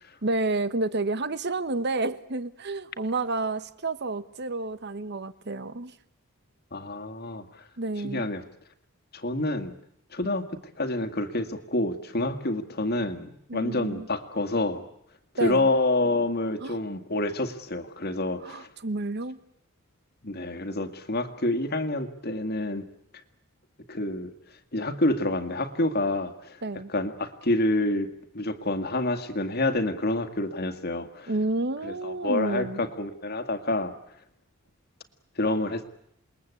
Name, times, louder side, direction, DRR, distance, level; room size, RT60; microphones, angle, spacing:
voice 1, 0.2-5.9 7.8-8.3 13.5-14.1 15.4-15.7 16.6-16.8 18.4-19.4 26.6-26.9 31.3-32.8, right 2 dB, 50° right, 15 dB, 1.1 m, -30 dB
voice 2, 6.7-7.6 8.0-8.4 9.1-9.7 10.1-14.9 15.4-18.7 20.2-22.8 23.9-24.3 24.7-26.6 26.9-28.1 28.3-31.3 31.8-33.9 35.4-35.8, left 2 dB, 45° left, 7 dB, 2.0 m, -28 dB
28.0 x 21.0 x 8.4 m, 0.76 s
head